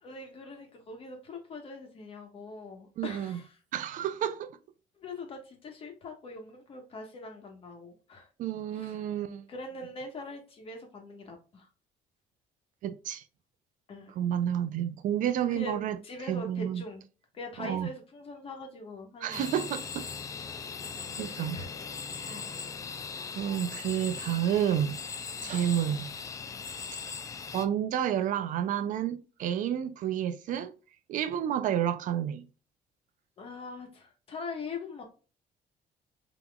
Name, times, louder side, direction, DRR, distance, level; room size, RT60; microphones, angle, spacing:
voice 1, 0.0-3.6 5.0-8.3 8.7-9.1 9.5-11.7 13.9-14.1 15.5-17.0 17.3-19.5 21.2-21.7 22.0-22.5 25.3-25.6 33.4-35.0, left 2 dB, 40° left, 1.2 m, -42 dB
voice 2, 3.0-3.4 3.7-4.5 8.4-9.5 12.8-13.2 14.2-16.0 16.3-16.8 17.6-17.9 19.2-20.1 21.2-21.6 22.2-22.4 23.4-25.0 25.4-26.1 27.5-30.7 31.1-32.5, right 10 dB, 60° right, 0.4 m, -30 dB
sound 1, 19.3-27.7, left 5 dB, 20° left, 0.3 m, -39 dB
5.7 x 3.0 x 2.3 m
cardioid pair, 155°, 15 cm